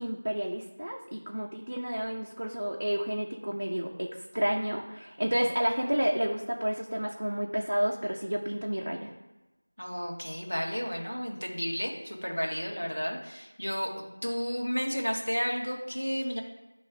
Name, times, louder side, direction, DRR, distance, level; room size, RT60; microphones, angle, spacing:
voice 1, 0.0-9.1, equal, 35° right, -1 dB, 0.5 m, -30 dB
voice 2, 9.8-16.4, equal, 60° left, 0 dB, 1.6 m, -32 dB
9.0 x 3.1 x 4.7 m, 1.1 s
figure-of-eight pair, 180°, 0 cm